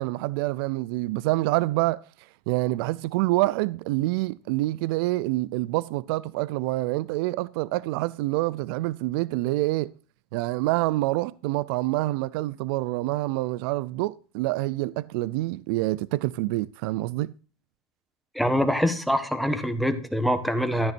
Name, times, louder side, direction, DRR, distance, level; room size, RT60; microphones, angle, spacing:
voice 1, 0.0-2.0 2.5-9.9 10.3-17.3, right 19 dB, 65° right, 0.4 m, -26 dB
voice 2, 18.3-20.9, equal, ahead, 1.3 m, -24 dB
12.5 x 10.5 x 2.6 m
hypercardioid pair, 110°, 13 cm